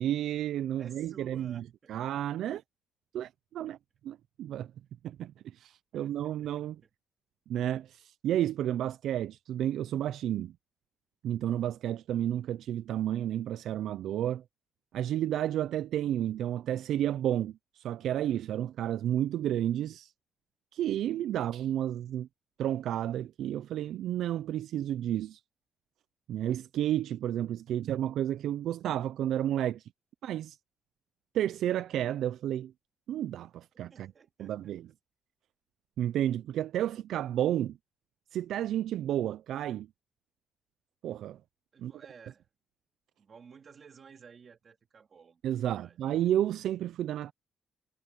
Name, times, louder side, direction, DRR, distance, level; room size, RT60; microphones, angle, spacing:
voice 1, 0.0-1.6 1.9-2.6 3.1-3.8 4.0-4.7 5.0-6.8 7.5-10.5 11.2-14.4 14.9-20.1 20.7-22.3 22.6-25.4 26.3-29.9 30.2-30.6 31.3-32.7 33.1-34.1 34.4-34.9 36.0-37.8 38.3-39.9 41.0-41.4 41.8-41.9 45.4-47.3, right 11 dB, 70° right, 0.4 m, -31 dB
voice 2, 0.8-2.0 2.5-2.6 5.9-6.9 33.9-34.8 41.7-42.5 43.2-46.0, right 6 dB, 35° right, 3.1 m, -55 dB
cardioid pair, 170°, 0 cm